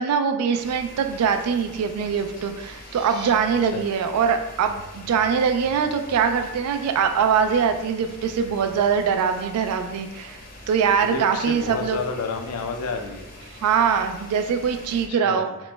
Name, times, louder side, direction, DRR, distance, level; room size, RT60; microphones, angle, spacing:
voice 1, 0.0-10.4 10.7-12.0 13.6-15.5, right 6 dB, 80° right, 11 dB, 0.3 m, -22 dB
sound 1, 0.6-15.1, left 1 dB, 40° left, 0.6 m, -43 dB
sound 2, 2.5-3.3, right 2 dB, 20° right, 0.5 m, -42 dB
voice 2, 11.0-13.3 15.1-15.6, left 4 dB, 85° left, 5 dB, 0.4 m, -30 dB
2.9 x 2.0 x 3.2 m, 0.94 s
head